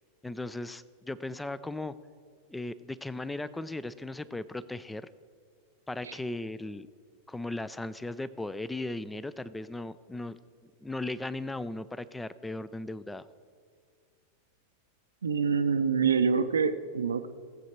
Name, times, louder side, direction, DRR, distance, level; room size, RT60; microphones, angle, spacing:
voice 1, 0.2-1.9 2.5-5.1 5.9-6.9 7.3-10.4 10.8-13.3, left 2 dB, 5° left, 17 dB, 0.4 m, -37 dB
voice 2, 15.2-17.3, right 6 dB, 70° right, 10 dB, 0.6 m, -26 dB
16.5 x 8.1 x 4.4 m, 2.1 s
figure-of-eight pair, 90°, 0 cm